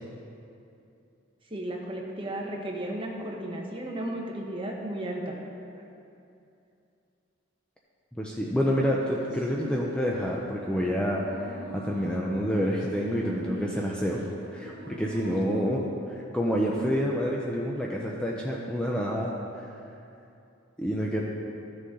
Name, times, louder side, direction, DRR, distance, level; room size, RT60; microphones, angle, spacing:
voice 1, 1.5-5.4 8.9-9.0, right 1 dB, 25° right, -1 dB, 1.1 m, -34 dB
voice 2, 8.1-14.2 14.5-19.6 20.8-21.2, equal, 5° left, -3 dB, 0.6 m, -28 dB
sound 1, 9.0-15.9, equal, 60° right, 1.6 m, -44 dB
14.0 x 6.7 x 3.8 m, 2.7 s
head